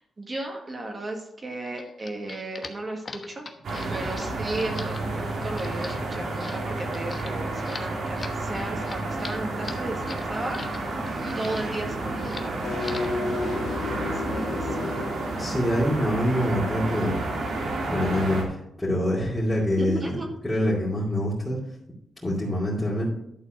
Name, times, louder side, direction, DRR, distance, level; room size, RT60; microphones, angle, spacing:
voice 1, 0.0-3.5 3.9-13.1 13.9-14.8 19.7-20.3, right 2 dB, 35° right, 2 dB, 1.7 m, -35 dB
sound 1, 1.6-10.8 11.1-11.8 12.2-12.5 12.8-13.2, left 3 dB, 40° left, 1.1 m, -41 dB
sound 2, 3.6-18.4, right 2 dB, 70° right, 2.2 m, -31 dB
sound 3, 12.5-15.3, left 2 dB, 55° left, 2.1 m, -31 dB
voice 2, 15.4-17.2 17.9-20.2 20.4-21.6 22.2-23.1, equal, 15° left, -6 dB, 2.6 m, -25 dB
11.5 x 4.1 x 6.4 m, 0.79 s
cardioid pair, 80°, 0 cm